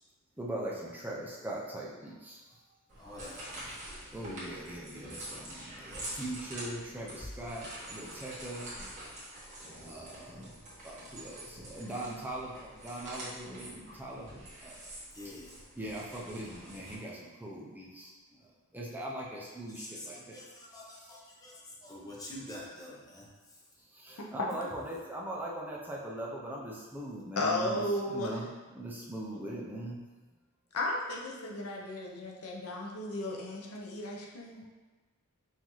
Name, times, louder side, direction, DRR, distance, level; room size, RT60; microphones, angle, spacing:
voice 1, 0.4-2.4 4.1-8.7 9.8-10.4 10.8-14.9 15.8-18.5 18.7-20.4 20.9-21.1 23.9-27.8 28.1-30.1 34.6-34.7, right 1 dB, 10° right, -4 dB, 0.5 m, -41 dB
sound 1, 2.9-16.9, right 1 dB, 35° right, 1.3 m, -46 dB
voice 2, 3.0-3.8 9.4-10.2 15.1-15.6 19.7-23.3, left 1 dB, 15° left, -5 dB, 0.8 m, -47 dB
voice 3, 27.4-28.4 30.7-34.6, left 1 dB, 75° left, -2 dB, 0.7 m, -34 dB
5.6 x 2.6 x 3.0 m, 1.3 s
head